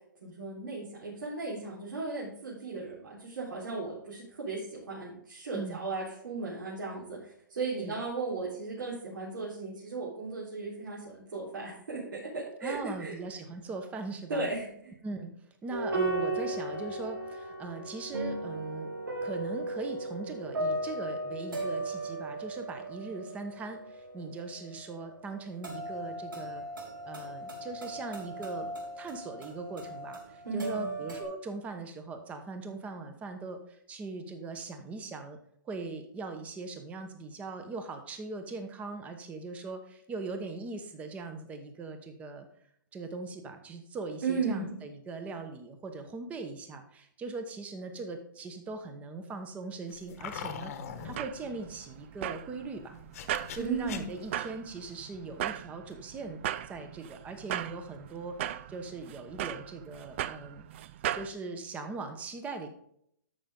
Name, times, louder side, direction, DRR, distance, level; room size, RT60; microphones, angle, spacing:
voice 1, 0.2-13.1 14.3-14.9 30.4-30.9 44.2-44.7 53.6-54.1, right 4 dB, 70° right, -7 dB, 4.1 m, -36 dB
voice 2, 12.6-14.5 15.0-15.3 15.6-18.9 19.2-26.6 27.0-28.7 29.0-35.4 35.6-42.5 42.9-50.7 51.0-53.0 53.5-56.4 56.6-60.6 61.1-62.7, right 3 dB, 15° right, 7 dB, 1.0 m, -40 dB
sound 1, 15.7-31.2, right 2 dB, 85° right, 3.1 m, -36 dB
sound 2, 49.9-51.2 53.0-54.3, left 7 dB, 45° left, 1.2 m, -41 dB
sound 3, 50.9-61.3, right 11 dB, 35° right, 0.4 m, -38 dB
13.0 x 5.8 x 3.8 m, 0.70 s
hypercardioid pair, 155°, 11 cm